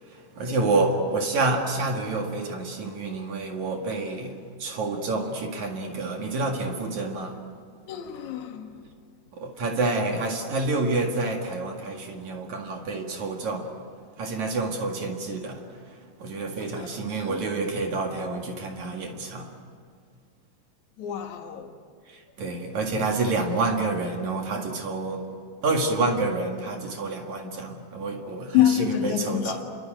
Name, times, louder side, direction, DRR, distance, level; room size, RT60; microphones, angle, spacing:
voice 1, 0.1-7.4 9.3-13.7 14.2-19.5 22.1-25.2 25.6-29.6, right 3 dB, 60° right, 3.3 m, -28 dB
voice 2, 7.9-8.8 16.6-17.4 21.0-21.7 28.5-29.6, left 11 dB, 65° left, 2.9 m, -27 dB
28.5 x 23.0 x 9.0 m
omnidirectional pair, 3.9 m